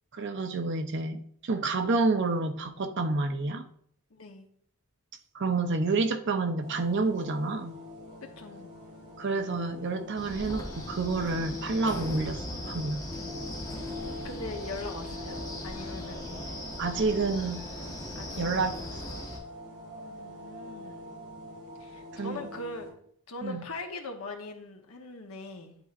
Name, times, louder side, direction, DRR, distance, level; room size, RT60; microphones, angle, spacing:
voice 1, 0.1-3.7 5.3-7.8 9.2-13.0 16.8-17.6 18.4-18.7 19.1-19.2 22.1-22.5 23.4-23.6, right 3 dB, 55° right, 8 dB, 0.6 m, -29 dB
voice 2, 4.1-4.5 8.4-8.7 13.7-16.3 18.1-18.6 20.0-21.1 21.8-23.0 23.3-25.8, left 3 dB, 80° left, 4 dB, 1.0 m, -41 dB
sound 1, 6.6-22.9, left 2 dB, 35° right, 2.6 m, -44 dB
Wind, 10.2-19.4, left 1 dB, 15° left, 1.1 m, -39 dB
10.5 x 4.2 x 2.5 m, 0.64 s
head